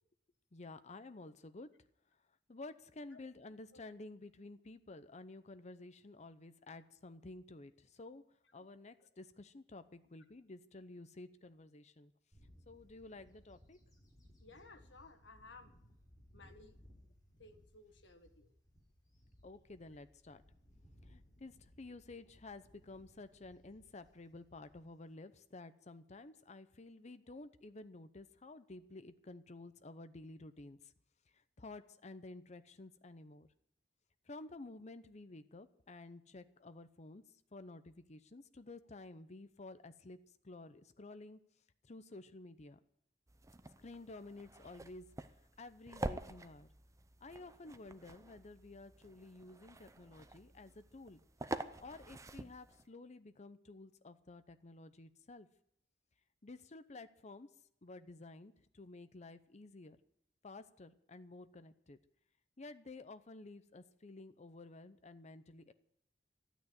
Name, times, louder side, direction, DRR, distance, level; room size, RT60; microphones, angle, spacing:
voice 1, 0.5-1.7 2.5-8.2 8.5-12.1 12.7-13.8 19.4-20.4 21.0-30.9 31.6-33.5 34.3-37.2 37.5-40.2 40.4-41.4 41.8-42.8 43.8-45.1 45.6-46.7 47.2-51.2 51.8-55.5 56.4-57.5 57.8-60.0 60.4-62.0 62.6-65.7, left 2 dB, 40° left, 11 dB, 0.8 m, -52 dB
Bird / Wind, 12.3-25.1, equal, 20° left, 4.3 m, -64 dB
voice 2, 14.4-15.7 16.3-18.5, left 3 dB, 85° left, 7 dB, 1.6 m, -59 dB
sound 1, 43.3-52.9, right 2 dB, 20° right, 0.6 m, -47 dB
13.0 x 9.3 x 9.5 m, 0.73 s
head